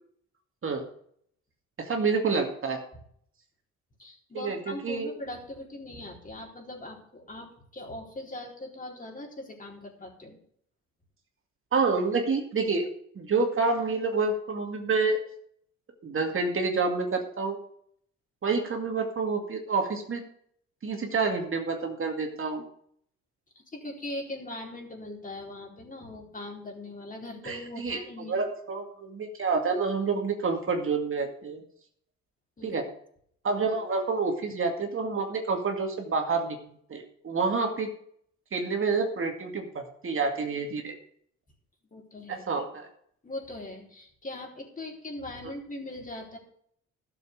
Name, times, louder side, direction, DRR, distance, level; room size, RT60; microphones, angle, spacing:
voice 1, 1.8-2.8 4.3-5.1 11.7-12.9 13.2-15.2 16.0-17.6 18.4-20.2 20.8-22.6 27.4-28.0 28.3-31.6 32.6-32.9 33.4-36.6 36.9-37.9 38.5-40.9 42.3-42.9, right 4 dB, 45° right, 3 dB, 2.3 m, -28 dB
voice 2, 4.0-10.4 23.7-28.4 32.6-32.8 41.9-42.4 43.2-46.4, left 1 dB, 25° left, 0 dB, 4.2 m, -40 dB
12.5 x 7.4 x 6.7 m, 0.65 s
cardioid pair, 90°, 30 cm